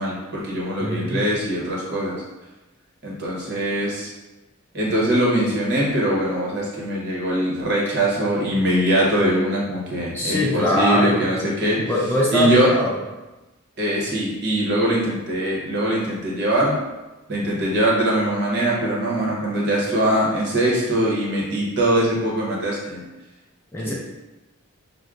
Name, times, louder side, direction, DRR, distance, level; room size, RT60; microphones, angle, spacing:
voice 1, 0.0-2.2 3.0-4.1 4.7-11.8 12.3-12.7 13.8-16.8 17.3-23.0 23.8-23.9, right 1 dB, 50° right, -4 dB, 1.0 m, -22 dB
voice 2, 0.8-1.2 10.1-11.3 11.9-13.0 23.7-23.9, left 1 dB, 10° left, -4 dB, 0.3 m, -22 dB
6.1 x 2.2 x 2.4 m, 1.1 s
head